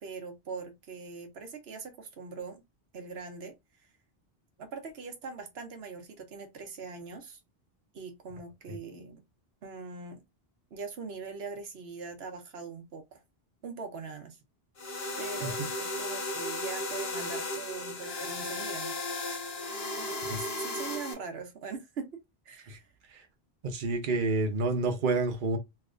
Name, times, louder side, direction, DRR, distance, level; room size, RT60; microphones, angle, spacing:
voice 1, 0.0-2.6 2.9-3.9 4.6-7.4 7.9-9.2 9.6-10.2 10.7-13.2 13.6-14.4 15.2-18.9 20.0-22.2 22.4-22.9, right 4 dB, 80° right, 1.0 m, -42 dB
sound 1, 14.8-21.1, left 2 dB, 75° left, 1.1 m, -35 dB
voice 2, 23.6-25.6, right 3 dB, 55° right, 0.8 m, -29 dB
3.2 x 2.8 x 2.5 m
omnidirectional pair, 1.0 m